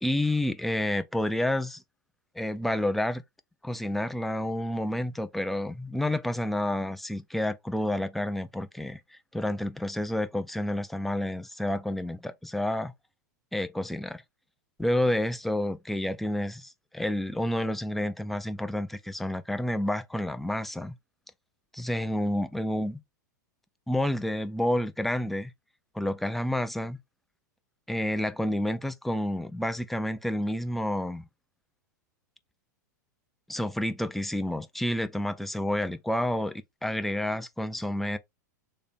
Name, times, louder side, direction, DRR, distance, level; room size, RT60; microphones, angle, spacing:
voice 1, 0.0-1.8 2.4-3.2 3.6-12.9 13.5-14.2 14.8-21.0 21.7-23.0 23.9-25.5 25.9-27.0 27.9-31.3 33.5-38.2, left 1 dB, ahead, 0.3 m, -29 dB
3.3 x 2.2 x 4.1 m
figure-of-eight pair, 95°, 10 cm